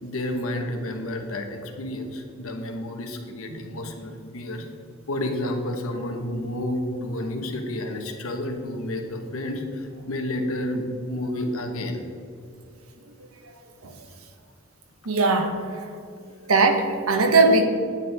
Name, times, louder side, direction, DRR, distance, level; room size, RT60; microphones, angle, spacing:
voice 1, 0.0-4.6 5.1-12.0, left 1 dB, 75° left, 4 dB, 1.3 m, -30 dB
voice 2, 15.1-15.9 16.5-17.6, right 3 dB, 85° right, 5 dB, 1.2 m, -20 dB
9.9 x 9.5 x 3.6 m, 2.4 s
head